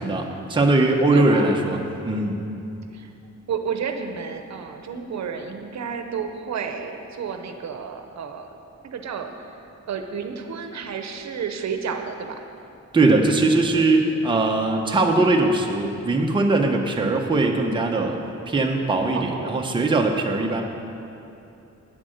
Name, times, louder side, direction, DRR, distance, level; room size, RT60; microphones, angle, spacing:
voice 1, 0.0-1.8 2.0-2.4 12.9-18.2 18.5-20.6, right 2 dB, 15° right, 1 dB, 0.7 m, -20 dB
voice 2, 1.1-1.6 2.9-3.1 3.5-8.5 8.8-9.6 9.9-12.4 19.1-19.6, right 6 dB, 65° right, 6 dB, 0.8 m, -31 dB
9.0 x 8.2 x 6.4 m, 2.7 s
wide cardioid pair, 170°, 29 cm